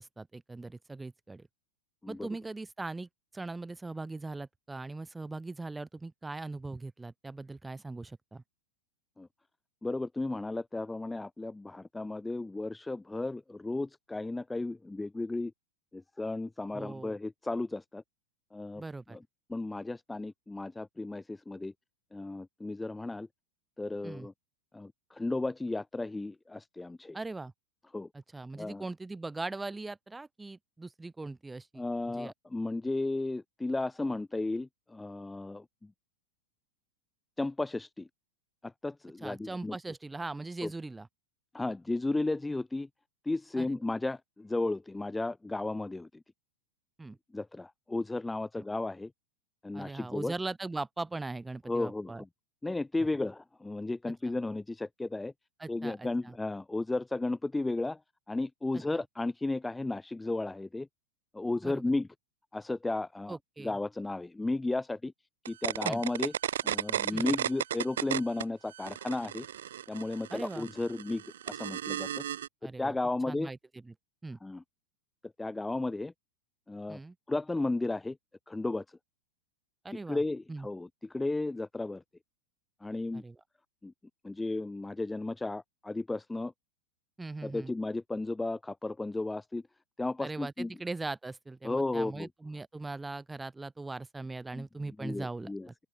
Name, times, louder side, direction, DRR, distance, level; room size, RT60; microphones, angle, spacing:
voice 1, 0.0-1.5 2.1-8.4 16.7-17.2 18.8-19.2 24.0-24.3 27.1-27.5 28.1-32.3 39.2-41.1 43.6-43.8 47.0-47.2 48.6-48.7 49.7-52.2 54.3-54.4 55.6-56.3 61.6-61.9 63.3-63.8 65.8-66.0 67.1-67.3 70.3-70.7 72.6-72.9 73.3-73.6 73.8-73.9 74.2-74.4 76.9-77.1 79.8-80.2 80.5-80.7 83.1-83.4 87.2-87.7 90.2-95.7, right 3 dB, 10° right, 3.1 m, -40 dB
voice 2, 9.8-15.5 15.9-18.0 18.5-18.8 19.1-19.2 19.5-21.7 22.1-23.3 23.8-24.3 24.7-27.2 27.9-28.1 28.6-28.8 31.8-35.9 37.4-38.1 38.6-39.8 40.6-40.7 41.5-42.9 43.2-46.2 47.3-49.1 49.6-50.3 51.7-52.3 52.6-55.3 55.7-58.0 58.3-60.9 61.3-62.1 62.5-65.1 65.5-66.3 66.6-69.4 69.9-72.2 72.6-73.5 74.4-74.6 75.4-76.1 76.7-77.0 77.3-78.2 78.5-78.8 80.1-82.0 82.8-83.2 83.8-83.9 84.2-86.5 87.4-89.6 90.0-90.7 91.6-92.3 94.5-94.7 95.0-95.7, left 2 dB, 5° left, 1.6 m, -34 dB
sound 1, 65.5-68.4 68.7-72.5, right 11 dB, 60° right, 1.3 m, -34 dB
open air
figure-of-eight pair, 90°, 0 cm